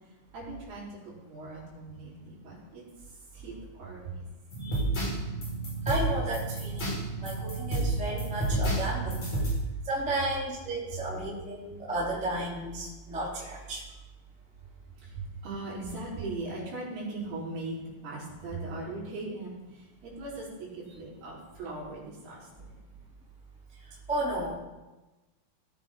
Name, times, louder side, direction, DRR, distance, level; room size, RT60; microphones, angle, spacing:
voice 1, 0.3-2.8 3.3-3.5 3.8-4.2 15.0-22.7, right 2 dB, 60° right, -7 dB, 6.0 m, -39 dB
sound 1, 4.5-9.5, right 2 dB, 35° left, 6.0 m, -30 dB
voice 2, 5.8-6.9 7.2-9.2 9.8-13.8 24.1-24.5, right 1 dB, ahead, -6 dB, 2.5 m, -33 dB
18.0 x 8.6 x 3.8 m, 1.1 s
omnidirectional pair, 5.1 m